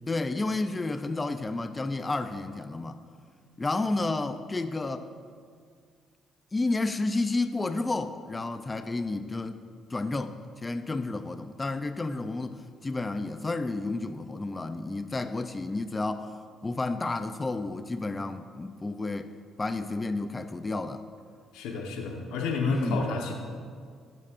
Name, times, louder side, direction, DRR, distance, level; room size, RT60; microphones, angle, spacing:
voice 1, 0.1-3.0 3.6-5.1 6.5-9.6 9.9-10.3 10.6-16.3 16.6-19.3 19.6-21.0 22.7-23.0, left 2 dB, 25° left, 9 dB, 0.5 m, -31 dB
voice 2, 21.5-23.3, left 4 dB, 90° left, 1 dB, 1.3 m, -30 dB
20.5 x 7.7 x 2.6 m, 2.1 s
supercardioid pair, 80°, 0 cm